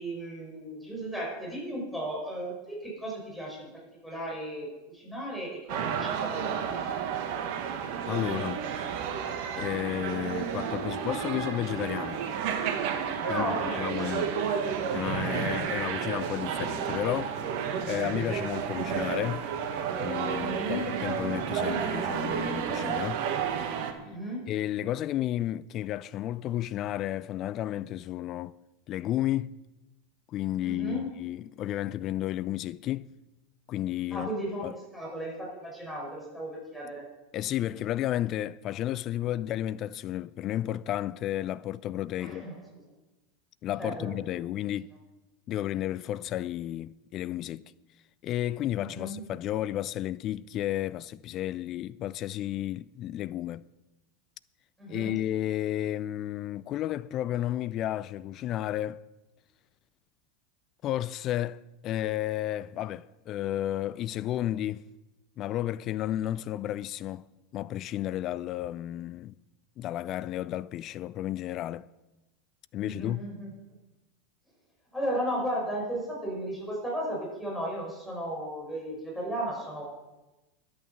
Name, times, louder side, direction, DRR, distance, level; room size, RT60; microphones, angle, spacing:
voice 1, 0.0-3.7 4.0-6.8 13.2-14.3 14.7-15.0 20.4-20.9 24.0-24.5 30.6-31.1 34.1-37.0 42.2-42.6 43.8-44.1 48.9-49.2 54.8-55.1 72.8-73.5 74.9-79.8, right 1 dB, ahead, 5.7 m, -35 dB
sound 1, 5.7-23.9, right 7 dB, 60° right, 1.6 m, -31 dB
voice 2, 8.1-8.7 9.6-12.2 13.3-14.3 14.9-17.4 17.9-19.5 20.0-23.2 24.5-28.6 28.9-29.5 30.3-33.1 33.7-34.3 34.6-34.7 37.3-42.5 43.6-44.9 45.5-47.7 48.2-53.6 54.9-59.0 60.8-64.8 65.4-69.3 69.8-71.9 72.7-73.2, left 13 dB, 45° left, 0.3 m, -32 dB
11.0 x 8.7 x 7.1 m
hypercardioid pair, 90°, 0 cm